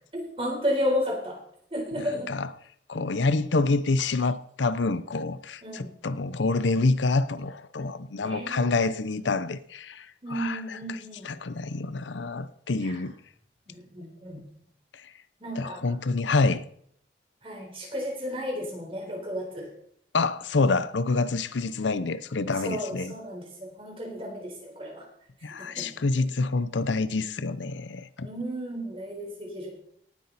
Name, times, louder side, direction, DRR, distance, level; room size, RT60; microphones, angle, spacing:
voice 1, 0.1-1.4 1.7-2.3 5.6-5.9 8.2-8.8 10.2-11.3 12.8-13.0 13.7-14.4 15.4-16.0 17.4-19.7 22.6-25.1 25.6-25.9 28.2-29.7, equal, 30° right, 4.1 m, -33 dB
voice 2, 1.9-2.5 2.9-11.0 11.2-13.1 15.0-15.1 15.6-16.6 20.1-23.1 25.4-28.3, left 3 dB, 90° left, 0.7 m, -27 dB
18.0 x 8.4 x 4.1 m
head